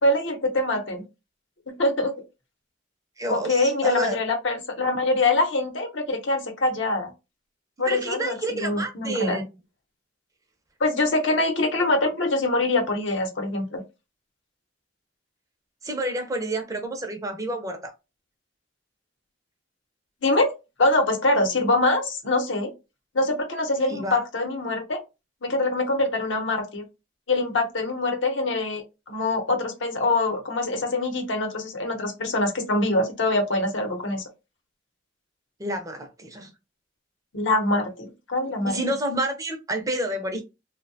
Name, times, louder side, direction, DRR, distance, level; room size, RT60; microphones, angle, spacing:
voice 1, 0.0-1.0 1.7-2.1 3.3-7.1 7.8-9.4 10.8-13.8 20.2-20.5 20.8-22.7 23.1-25.0 25.4-26.8 27.3-34.2 37.3-38.8, left 2 dB, 80° left, 0.8 m, -24 dB
voice 2, 3.2-4.2 7.9-9.4 15.8-17.9 23.9-24.2 35.6-36.5 38.7-40.4, right 1 dB, 20° right, 0.5 m, -29 dB
2.7 x 2.1 x 2.6 m
head